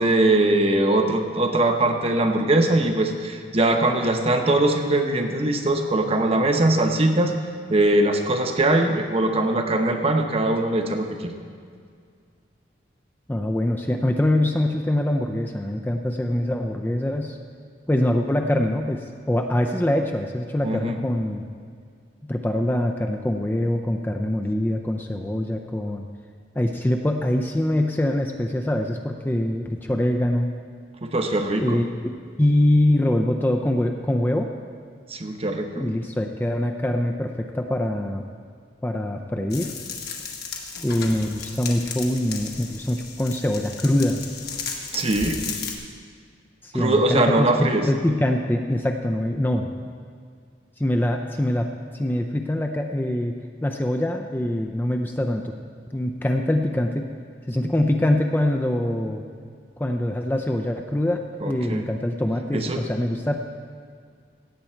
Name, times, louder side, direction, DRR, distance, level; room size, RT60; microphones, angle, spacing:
voice 1, 0.0-7.3 7.7-11.3 20.6-21.0 31.0-31.8 35.1-35.8 44.9-45.4 46.7-47.9 61.4-61.9 62.5-62.8, right 2 dB, 35° right, 4 dB, 0.9 m, -21 dB
voice 2, 13.3-17.4 17.9-21.5 22.2-26.1 26.6-30.5 31.6-31.9 32.4-34.5 35.8-38.2 38.8-39.7 40.8-44.2 46.6-49.7 50.8-51.7 51.9-55.5 55.9-57.1 57.5-59.2 59.8-63.4, left 1 dB, 10° left, 3 dB, 0.4 m, -24 dB
sound 1, 39.5-45.7, left 5 dB, 60° left, 1.3 m, -35 dB
17.0 x 7.7 x 4.4 m, 2.1 s
head